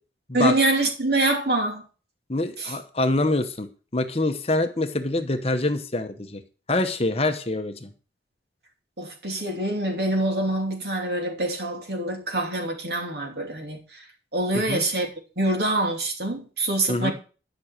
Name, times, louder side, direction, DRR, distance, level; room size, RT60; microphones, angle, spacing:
voice 1, 0.3-1.9 2.6-2.8 9.0-14.0 14.3-15.1 15.4-17.1, right 2 dB, 60° right, 2.9 m, -25 dB
voice 2, 2.3-6.4 6.7-7.9 14.7-14.8 16.9-17.1, left 2 dB, 30° left, 1.0 m, -25 dB
12.0 x 6.2 x 6.6 m
head